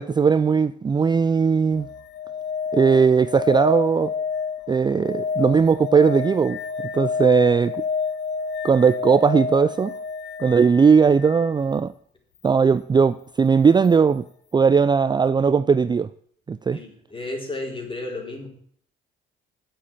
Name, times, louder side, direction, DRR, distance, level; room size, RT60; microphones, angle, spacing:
voice 1, 0.0-1.9 2.7-4.1 4.7-6.6 6.9-7.8 8.6-9.9 10.4-11.9 12.4-14.2 14.5-16.1 16.5-16.8, right 5 dB, 20° right, 0.4 m, -18 dB
sound 1, 1.7-11.5 13.8-13.9, left 5 dB, 60° left, 1.0 m, -29 dB
voice 2, 16.7-18.5, left 2 dB, 25° left, 3.9 m, -33 dB
8.2 x 7.8 x 8.9 m
cardioid pair, 90°, 20 cm